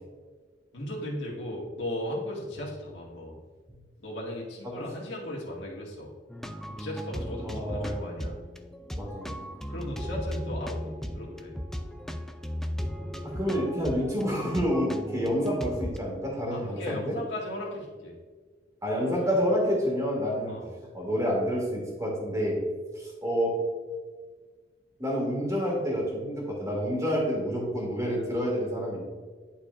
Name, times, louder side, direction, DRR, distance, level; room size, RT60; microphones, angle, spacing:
voice 1, 0.7-3.4 4.0-6.1 6.7-8.4 9.7-11.6 16.5-18.1 19.0-19.4 20.5-20.7, left 1 dB, 75° left, -3 dB, 1.8 m, -37 dB
sound 1, 6.3-16.0, equal, ahead, 0.4 m, -36 dB
voice 2, 7.4-8.1 9.0-9.3 13.2-17.1 18.8-20.5 20.9-22.6 22.9-23.6 25.0-29.0, equal, 20° right, -3 dB, 2.1 m, -28 dB
11.0 x 4.6 x 2.5 m, 1.5 s
head